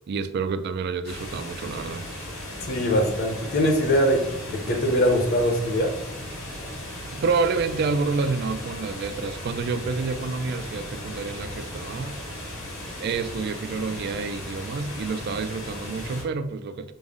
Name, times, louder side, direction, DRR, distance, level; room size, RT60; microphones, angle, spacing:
voice 1, 0.1-2.0 7.1-12.5 13.0-16.9, right 4 dB, 50° right, 11 dB, 0.3 m, -28 dB
sound 1, 1.0-16.2, left 1 dB, 85° left, 1.4 m, -36 dB
voice 2, 2.7-5.9, equal, 50° left, 3 dB, 0.6 m, -22 dB
5.3 x 2.0 x 3.5 m, 0.83 s
head